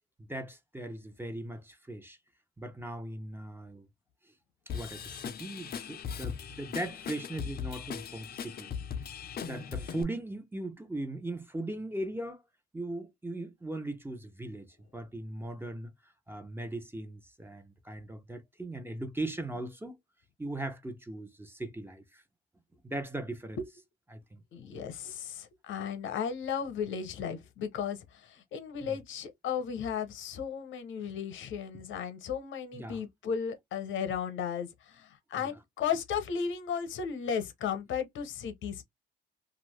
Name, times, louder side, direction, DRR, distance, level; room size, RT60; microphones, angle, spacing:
voice 1, 0.2-2.2 2.6-3.9 4.7-8.7 9.4-12.4 12.7-20.0 20.4-22.2 22.8-23.6 24.1-24.4 28.8-29.0 32.7-33.0 35.4-35.5, right 1 dB, 10° right, 0.7 m, -39 dB
Drum kit / Drum, 4.7-10.0, left 7 dB, 50° left, 0.6 m, -39 dB
voice 2, 24.5-38.8, left 7 dB, 75° left, 0.9 m, -35 dB
2.7 x 2.5 x 3.2 m
cardioid pair, 90°, 20 cm